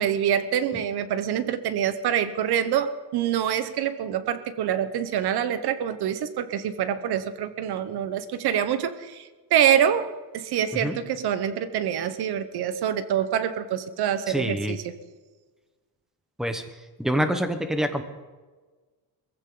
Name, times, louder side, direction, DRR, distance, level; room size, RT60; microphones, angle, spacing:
voice 1, 0.0-14.9, right 9 dB, 80° right, 12 dB, 1.2 m, -26 dB
voice 2, 14.3-14.8 16.4-16.6 17.0-18.0, equal, ahead, 7 dB, 1.2 m, -26 dB
22.0 x 15.5 x 4.0 m, 1.3 s
cardioid pair, 160°, 39 cm